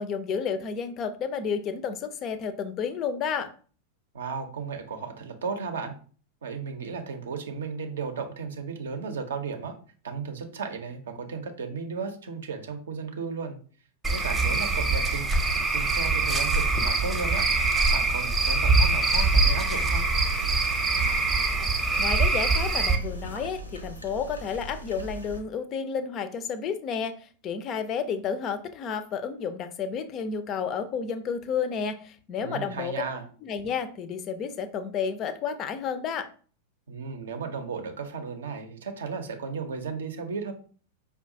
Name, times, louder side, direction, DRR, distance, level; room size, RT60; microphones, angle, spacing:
voice 1, 0.0-3.5 21.6-21.7 22.0-33.0 33.4-36.3, left 6 dB, 35° left, 11 dB, 0.4 m, -31 dB
voice 2, 4.1-5.9 6.4-9.7 10.0-13.6 14.1-17.4 17.9-20.0 32.4-33.2 36.9-40.5, right 5 dB, 65° right, 6 dB, 0.6 m, -35 dB
Cricket / Frog, 14.0-23.0, right 3 dB, 10° right, 0.6 m, -23 dB
sound 1, 19.1-25.4, equal, 90° left, 0.7 m, -40 dB
4.8 x 2.2 x 2.6 m, 0.41 s
figure-of-eight pair, 90°, 0 cm